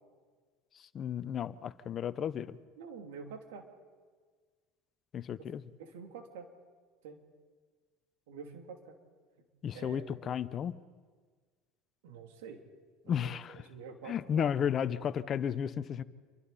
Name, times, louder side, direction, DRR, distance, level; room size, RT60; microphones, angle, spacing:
voice 1, 0.9-2.6 5.1-5.6 9.6-10.7 13.1-13.6 14.1-16.0, left 8 dB, 40° left, 15 dB, 0.9 m, -33 dB
voice 2, 2.8-3.6 5.8-6.5 7.0-7.2 8.3-8.9 9.7-10.3 12.0-12.6 13.0-14.5, right 5 dB, 80° right, 4 dB, 3.0 m, -47 dB
28.0 x 23.5 x 4.3 m, 1.5 s
supercardioid pair, 90°, 0 cm